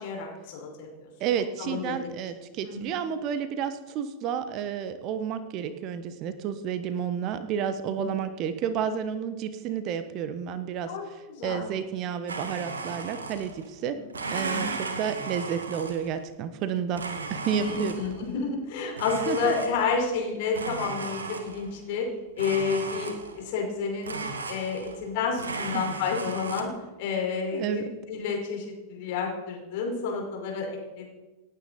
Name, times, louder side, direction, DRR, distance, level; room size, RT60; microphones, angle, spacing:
voice 1, 0.0-1.1 1.6-2.1 2.6-2.9 7.9-8.0 10.9-11.7 14.0-14.6 17.5-22.1 22.4-24.2 24.5-26.7 27.0-31.1, left 5 dB, 50° left, 0 dB, 5.1 m, -30 dB
voice 2, 1.2-14.0 14.3-17.0 17.3-18.0 19.3-19.5 25.7-25.8 27.5-27.9, right 8 dB, 40° right, 12 dB, 1.1 m, -31 dB
Domestic sounds home sounds, 12.3-13.7 14.1-16.2 16.9-18.2 19.0-20.1 20.5-21.8 22.4-23.5 24.0-25.1 25.4-26.6, right 3 dB, 70° right, 1.8 m, -35 dB
28.0 x 9.4 x 4.1 m, 1.2 s
figure-of-eight pair, 90°, 0 cm